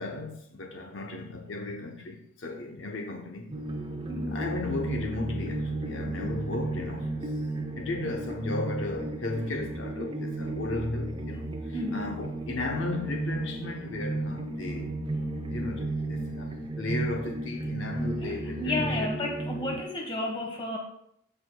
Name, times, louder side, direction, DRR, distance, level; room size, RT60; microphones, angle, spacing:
voice 1, 0.0-3.5 4.3-7.3 7.8-15.0 15.5-19.1, left 2 dB, 60° left, 0.7 m, -35 dB
sound 1, 3.5-19.8, right 2 dB, 25° right, 0.6 m, -34 dB
voice 2, 4.1-4.4 11.7-12.0 18.2-20.8, left 1 dB, 25° left, 1.3 m, -32 dB
14.0 x 4.8 x 2.2 m
head